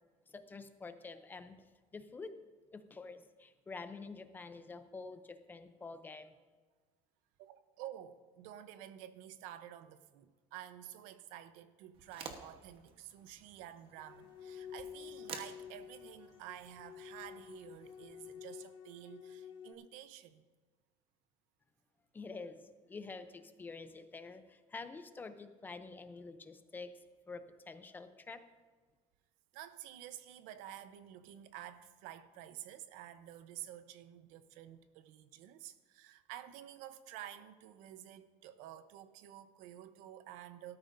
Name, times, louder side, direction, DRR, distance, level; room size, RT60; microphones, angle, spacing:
voice 1, 0.3-2.4 2.7-6.3 22.1-27.0 27.3-28.5, left 4 dB, 15° left, 0.6 m, -48 dB
voice 2, 7.4-20.4 29.5-40.8, right 12 dB, 85° right, 0.8 m, -50 dB
sound 1, 11.9-18.3, right 6 dB, 45° right, 1.1 m, -53 dB
sound 2, 14.0-19.7, left 8 dB, 35° left, 0.9 m, -50 dB
19.0 x 13.0 x 2.6 m
cardioid pair, 165°, 13 cm